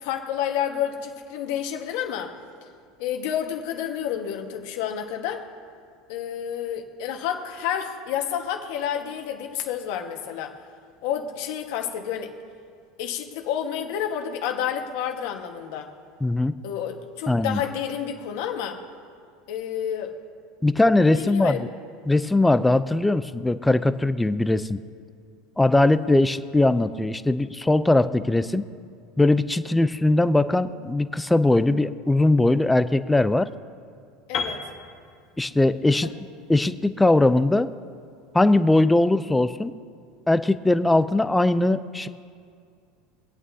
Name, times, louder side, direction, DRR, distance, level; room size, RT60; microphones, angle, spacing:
voice 1, 0.0-2.3 3.0-5.5 6.1-10.5 11.0-12.3 13.0-15.9 16.6-18.8 19.5-20.1 21.0-21.7 34.3-34.6 36.0-36.1, left 9 dB, 70° left, 4 dB, 1.4 m, -30 dB
voice 2, 16.2-16.5 17.3-17.6 20.6-21.7 22.1-24.8 25.6-28.6 29.2-33.5 35.4-36.1 36.5-37.7 38.3-39.7 40.3-42.1, left 2 dB, 5° left, 13 dB, 0.4 m, -20 dB
Piano, 34.3-38.3, left 5 dB, 45° left, 1.4 m, -36 dB
24.5 x 8.9 x 2.8 m, 2.2 s
supercardioid pair, 125°, 0 cm